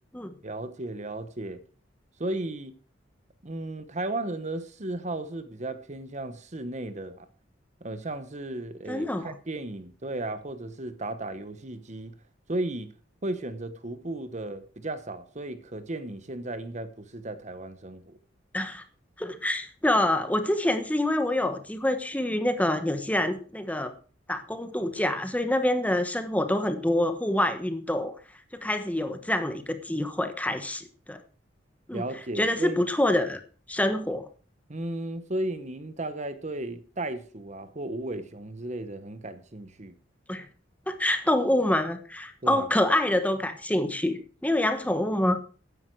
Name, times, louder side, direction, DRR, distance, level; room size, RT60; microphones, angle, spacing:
voice 1, 0.4-1.6 2.2-2.8 3.4-7.3 7.8-12.2 12.5-12.9 13.2-18.2 31.9-32.8 34.7-40.0 42.4-42.7, right 2 dB, 40° right, 1.0 m, -35 dB
voice 2, 8.9-9.3 18.5-18.8 19.2-23.9 24.3-28.2 28.5-31.2 31.9-32.0 32.4-33.4 33.7-34.3 40.3-40.5 40.9-45.4, left 1 dB, 10° left, 1.1 m, -26 dB
14.0 x 10.5 x 4.7 m
head